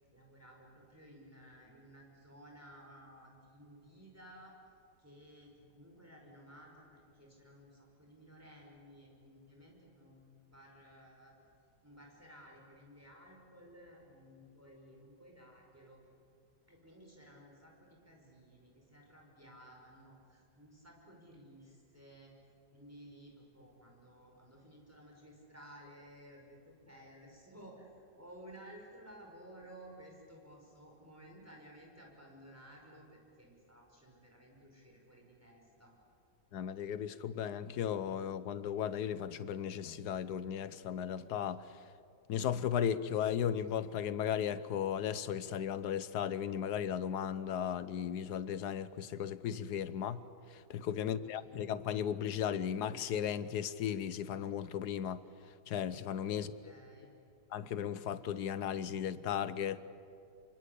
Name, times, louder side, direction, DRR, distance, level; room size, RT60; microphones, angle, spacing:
voice 1, 0.1-4.5 5.0-11.3 11.8-16.0 16.7-22.3 22.7-35.9 51.0-51.5 56.3-57.1, equal, 10° right, 5.6 m, -56 dB
voice 2, 36.5-41.6 42.3-50.2 50.5-55.2 55.7-56.5 57.5-59.8, left 9 dB, 75° left, 1.4 m, -36 dB
27.0 x 24.5 x 8.3 m
omnidirectional pair, 1.8 m